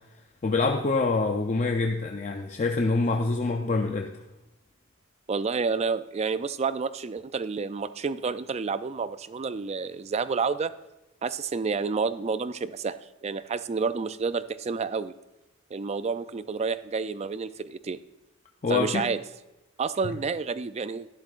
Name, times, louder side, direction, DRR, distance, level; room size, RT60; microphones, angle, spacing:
voice 1, 0.4-4.2 18.6-19.1, left 3 dB, 30° left, 3 dB, 0.5 m, -26 dB
voice 2, 5.3-10.7 11.2-13.0 13.2-15.1 15.7-18.0 18.7-19.2 19.8-21.1, right 5 dB, 30° right, 13 dB, 0.3 m, -29 dB
11.5 x 11.5 x 2.5 m, 0.99 s
head